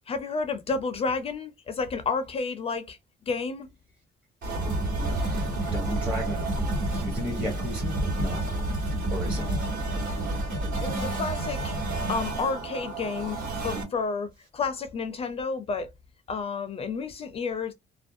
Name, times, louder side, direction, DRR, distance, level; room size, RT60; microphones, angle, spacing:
voice 1, 0.1-3.0 3.3-3.7 9.4-9.7 10.8-11.7 12.1-13.4 13.6-15.9 16.3-17.7, left 4 dB, 35° left, 0.4 m, -31 dB
sound 1, 4.4-13.8, right 2 dB, 55° right, 1.3 m, -29 dB
voice 2, 5.0-6.5 7.1-8.4 9.1-9.5, equal, 5° right, 0.7 m, -34 dB
2.4 x 2.1 x 2.5 m
cardioid pair, 110°, 17 cm